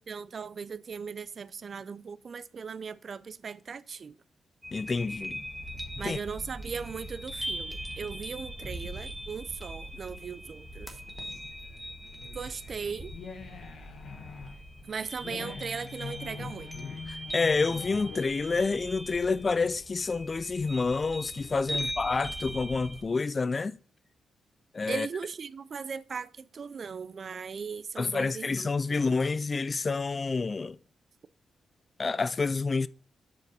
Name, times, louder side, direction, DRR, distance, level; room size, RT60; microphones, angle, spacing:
voice 1, 0.1-4.2 6.0-11.0 12.3-13.1 14.9-16.7 21.7-21.9 24.9-29.0, right 6 dB, 50° right, 0.4 m, -38 dB
sound 1, 4.6-23.0, equal, 10° right, 1.5 m, -40 dB
voice 2, 4.7-5.4 6.0-6.2 17.1-23.8 24.7-25.1 28.0-30.8 32.0-32.9, left 4 dB, 35° left, 0.4 m, -28 dB
sound 2, 10.9-19.9, left 5 dB, 75° left, 1.5 m, -44 dB
7.9 x 5.0 x 4.2 m
cardioid pair, 100°, 0 cm